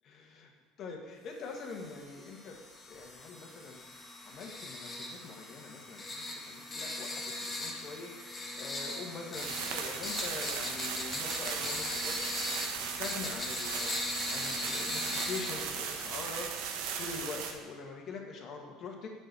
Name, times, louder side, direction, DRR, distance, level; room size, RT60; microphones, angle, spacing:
voice 1, 0.0-0.5 0.8-2.6 2.9-3.8 4.2-8.1 8.6-14.0 14.3-16.5 16.7-19.1, left 4 dB, 50° left, 2 dB, 1.8 m, -44 dB
sound 1, 1.6-16.5, left 2 dB, 20° left, 1.8 m, -40 dB
sound 2, 9.4-17.5, right 6 dB, 75° right, 1.1 m, -37 dB
7.6 x 6.3 x 7.0 m, 1.5 s
supercardioid pair, 90°, 0 cm